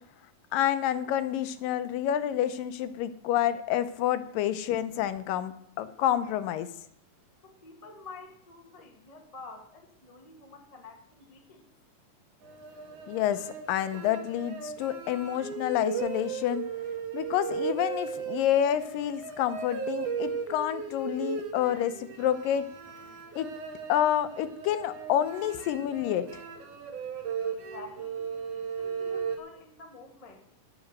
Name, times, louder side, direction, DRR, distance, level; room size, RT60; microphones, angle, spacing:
voice 1, 0.5-6.7 13.1-16.7 17.1-22.7 23.4-23.5 23.9-26.4, left 11 dB, 80° left, 12 dB, 2.3 m, -28 dB
voice 2, 7.4-11.7 27.4-30.4, left 3 dB, 45° left, 3 dB, 0.4 m, -49 dB
sound 1, 12.4-29.4, right 6 dB, 65° right, 2.7 m, -37 dB
10.5 x 8.8 x 6.6 m, 0.67 s
omnidirectional pair, 4.1 m